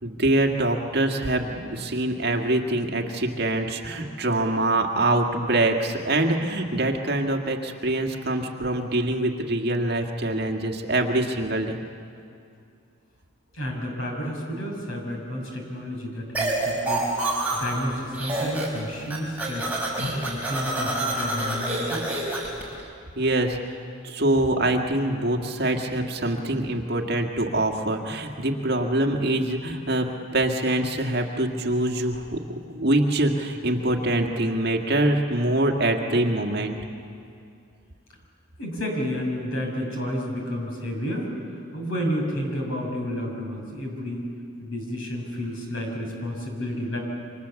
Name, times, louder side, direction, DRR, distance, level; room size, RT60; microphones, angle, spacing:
voice 1, 0.0-11.8 23.2-23.6 24.0-30.1 30.3-36.8, right 1 dB, 50° right, 3 dB, 1.9 m, -24 dB
voice 2, 13.5-19.8 20.2-22.2 38.6-44.2 44.6-47.0, equal, 70° left, 1 dB, 6.2 m, -31 dB
sound 1, 16.3-17.8 18.1-18.8 19.0-22.6, right 2 dB, 5° right, 4.7 m, -27 dB
28.5 x 25.0 x 7.1 m, 2.4 s
head